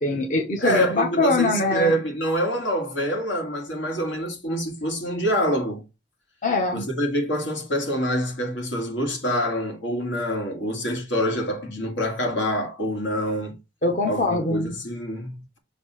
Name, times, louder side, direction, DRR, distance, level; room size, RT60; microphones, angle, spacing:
voice 1, 0.0-2.0 6.4-6.9 13.8-14.7, left 2 dB, 45° left, 0.9 m, -23 dB
voice 2, 0.6-5.8 6.7-13.6 14.0-15.6, equal, 85° left, 1.9 m, -26 dB
6.7 x 2.7 x 5.6 m
head